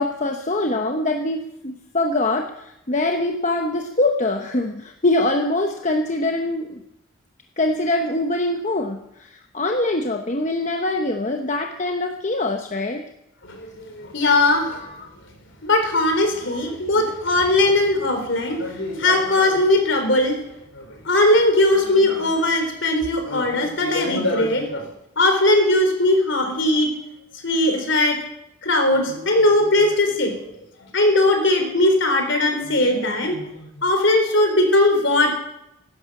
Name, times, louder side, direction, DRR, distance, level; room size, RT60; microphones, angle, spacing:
voice 1, 0.0-6.8 7.6-13.0 14.7-15.1 16.4-16.6, left 2 dB, 35° left, 4 dB, 1.0 m, -24 dB
voice 2, 13.4-14.8 15.6-20.4 20.7-24.9 25.2-26.9 27.4-28.2 28.6-30.4 30.9-35.3, left 1 dB, 60° left, 5 dB, 3.7 m, -19 dB
16.0 x 12.5 x 6.1 m, 0.82 s
head